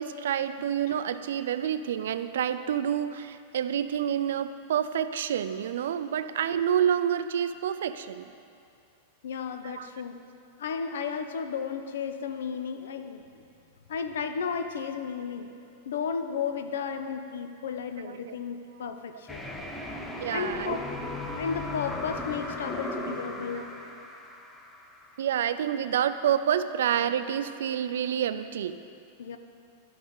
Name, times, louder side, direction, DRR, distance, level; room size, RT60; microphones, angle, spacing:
voice 1, 0.0-8.3 9.6-9.9 18.0-18.4 20.2-20.8 23.6-23.8 25.2-28.8, right 9 dB, 85° right, 12 dB, 0.4 m, -28 dB
voice 2, 9.2-10.2 10.6-13.4 13.9-15.5 15.9-19.4 20.3-20.8 21.4-23.7 29.2-29.4, left 6 dB, 85° left, 8 dB, 0.6 m, -33 dB
sound 1, 19.3-25.2, left 2 dB, 10° left, 0.6 m, -37 dB
12.5 x 5.4 x 3.9 m, 2.5 s
supercardioid pair, 155°, 0 cm